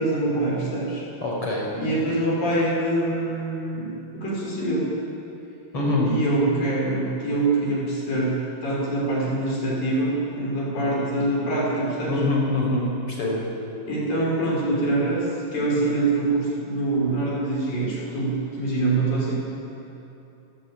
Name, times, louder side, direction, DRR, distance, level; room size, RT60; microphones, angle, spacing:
voice 1, 0.0-1.0 1.8-4.9 6.0-8.4 8.6-12.1 13.9-19.3, right 2 dB, 50° left, -4 dB, 7.2 m, -24 dB
voice 2, 1.2-1.7 5.7-6.1 12.1-13.4, left 2 dB, 30° left, -2 dB, 6.2 m, -24 dB
28.5 x 16.5 x 9.0 m, 2.9 s
omnidirectional pair, 5.1 m